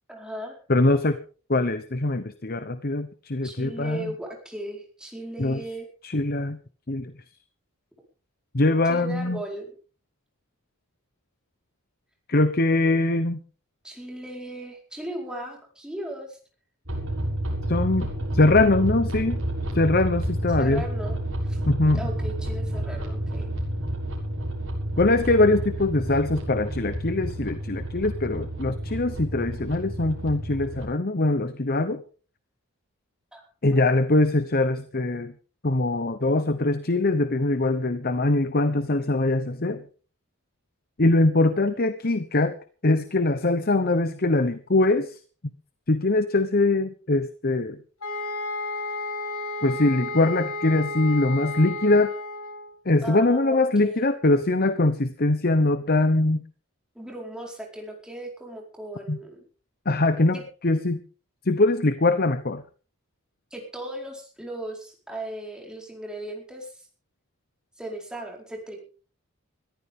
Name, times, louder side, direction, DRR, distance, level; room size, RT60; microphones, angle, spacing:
voice 1, 0.1-0.6 3.4-5.9 8.8-9.7 13.8-16.4 20.6-21.6 21.9-23.5 33.3-33.4 33.7-33.8 53.0-54.1 56.9-59.4 60.3-60.4 63.5-66.9 67.8-68.8, right 1 dB, 5° right, 0 dB, 4.7 m, -37 dB
voice 2, 0.7-1.2 1.5-4.1 5.4-5.6 6.0-6.6 6.9-7.1 8.5-9.4 12.3-13.4 17.7-18.1 18.3-19.4 19.7-20.8 21.7-22.0 25.0-32.0 33.6-35.3 35.6-39.8 41.0-42.6 42.8-45.2 45.9-47.8 49.6-52.1 52.9-56.4 59.1-59.2 59.9-60.4 60.6-61.0 61.5-62.6, left 2 dB, 40° left, 11 dB, 1.0 m, -22 dB
sound 1, 16.9-30.9, right 1 dB, 65° right, 6.5 m, -30 dB
sound 2, 48.0-52.7, left 2 dB, 80° left, 5.3 m, -32 dB
21.0 x 14.5 x 3.7 m, 0.39 s
head